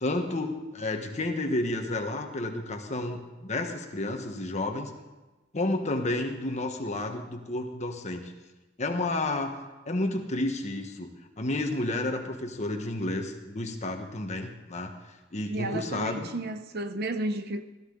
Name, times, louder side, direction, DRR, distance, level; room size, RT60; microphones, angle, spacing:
voice 1, 0.0-4.9 5.5-8.3 8.8-9.6 9.9-11.1 11.4-14.9 15.3-16.3, left 2 dB, 35° left, 1.3 m, -31 dB
voice 2, 15.5-17.6, right 2 dB, 55° right, 0.7 m, -32 dB
16.5 x 13.5 x 4.0 m
head